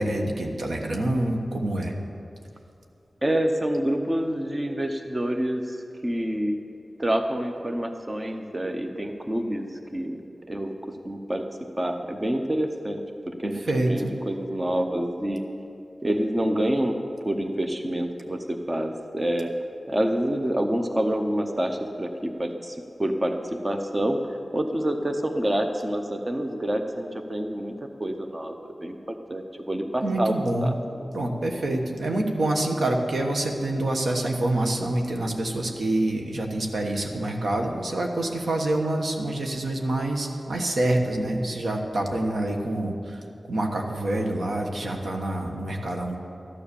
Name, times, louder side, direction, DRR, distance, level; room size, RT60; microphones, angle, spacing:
voice 1, 0.0-1.9 13.4-14.1 30.0-30.8 31.1-43.2 43.5-46.2, right 1 dB, 80° right, 2 dB, 1.4 m, -26 dB
voice 2, 3.2-5.8 6.0-6.6 7.0-10.7 11.0-11.4 11.8-13.6 13.9-15.4 16.0-16.9 17.2-19.5 19.9-23.4 23.6-27.7 28.0-30.3 30.6-31.0, right 1 dB, 25° right, 5 dB, 0.8 m, -27 dB
13.0 x 9.9 x 7.0 m, 2.6 s
wide cardioid pair, 100°, 0 cm